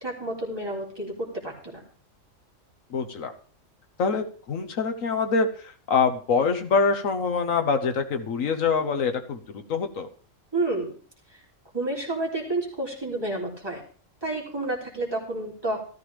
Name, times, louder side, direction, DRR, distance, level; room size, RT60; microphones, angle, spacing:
voice 1, 0.0-1.8 10.5-10.9 11.7-13.8 14.2-15.9, right 2 dB, 20° right, -3 dB, 3.0 m, -30 dB
voice 2, 2.9-3.3 4.0-10.1, left 5 dB, 85° left, 7 dB, 1.5 m, -25 dB
13.5 x 13.0 x 3.3 m, 0.41 s
omnidirectional pair, 1.4 m